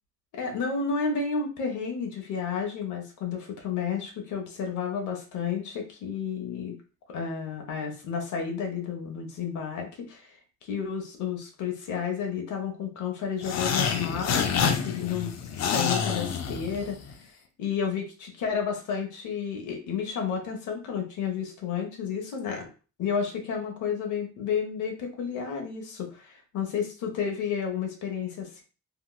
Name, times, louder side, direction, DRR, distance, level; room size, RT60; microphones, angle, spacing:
voice 1, 0.3-6.8 7.1-10.3 10.6-17.0 17.6-22.7 23.0-28.6, left 6 dB, 75° left, 2 dB, 0.9 m, -31 dB
sound 1, 13.4-17.1, left 6 dB, 60° left, 0.6 m, -28 dB
2.9 x 2.8 x 2.3 m, 0.35 s
cardioid pair, 90°, 30 cm